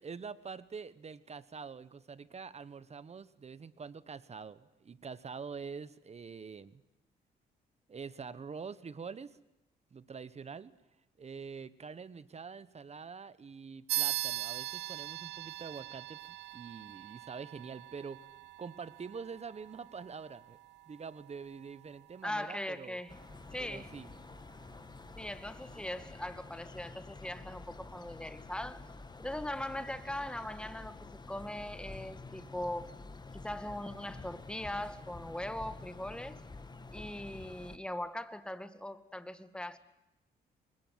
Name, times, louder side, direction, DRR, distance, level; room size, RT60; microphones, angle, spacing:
voice 1, 0.0-6.8 7.9-9.4 9.9-10.7 11.2-16.2 16.5-18.3 18.6-20.6 20.9-23.0 23.6-24.1, right 5 dB, 40° right, 16 dB, 1.3 m, -45 dB
sound 1, 13.9-23.9, right 16 dB, 85° right, 1.1 m, -41 dB
voice 2, 22.2-23.1 23.5-23.9 25.2-28.8 29.2-32.9 33.3-36.4 36.9-39.8, left 1 dB, 5° left, 11 dB, 2.0 m, -40 dB
sound 2, 23.1-37.8, left 3 dB, 25° left, 2.0 m, -49 dB
24.5 x 21.5 x 9.5 m, 0.91 s
cardioid pair, 85°, 17 cm